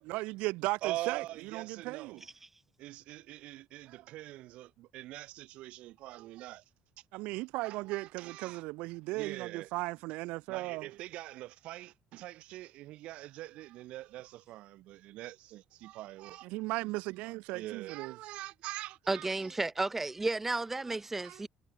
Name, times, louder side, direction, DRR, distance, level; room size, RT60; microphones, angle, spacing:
voice 1, 0.0-2.2 7.1-10.9 16.4-18.1, right 22 dB, 90° right, 1.9 m, -36 dB
voice 2, 0.8-2.2 2.8-6.6 7.6-8.6 9.1-9.7 10.5-16.5 17.5-19.5 20.9-21.5, right 16 dB, 75° right, 3.3 m, -44 dB
voice 3, 19.1-21.5, right 3 dB, 15° right, 1.2 m, -32 dB
cardioid pair, 130°, 2 cm